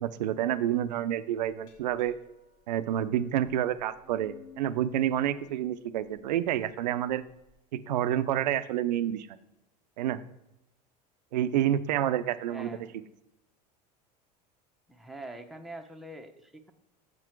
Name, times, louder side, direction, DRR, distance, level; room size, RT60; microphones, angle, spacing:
voice 1, 0.0-2.1 2.7-7.2 7.7-9.3 10.0-10.2 11.3-12.7, right 11 dB, 85° right, 13 dB, 0.6 m, -28 dB
Glass, 1.4-7.5, left 7 dB, 80° left, 3.3 m, -56 dB
voice 2, 12.5-12.9 14.9-16.7, right 2 dB, ahead, 3 dB, 1.0 m, -44 dB
7.4 x 6.1 x 4.6 m, 0.89 s
hypercardioid pair, 90°, 21 cm